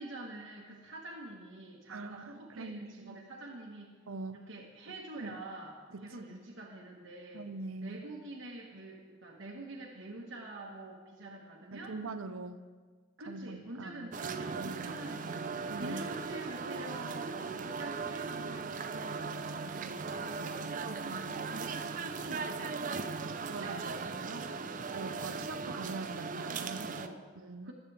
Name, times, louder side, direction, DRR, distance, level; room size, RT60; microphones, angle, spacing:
voice 1, 0.0-3.9 4.3-5.8 6.0-7.5 7.8-12.0 13.2-15.4 15.8-20.7 21.3-21.6 22.0-23.2 23.5-24.6 25.0-25.5 26.8-27.2 27.6-27.7, right 2 dB, 65° right, -2 dB, 1.3 m, -46 dB
voice 2, 1.9-3.2 4.1-4.4 5.1-5.4 5.9-6.0 6.3-6.4 7.3-8.0 11.7-12.6 13.3-14.1 14.5-15.0 15.7-16.1 21.0-21.3 23.5-24.1 24.9-26.9 27.4-27.7, right 3 dB, 85° right, 11 dB, 0.7 m, -43 dB
sound 1, 14.1-27.1, right 4 dB, 40° right, 0.5 m, -38 dB
21.5 x 8.6 x 3.4 m, 1.5 s
head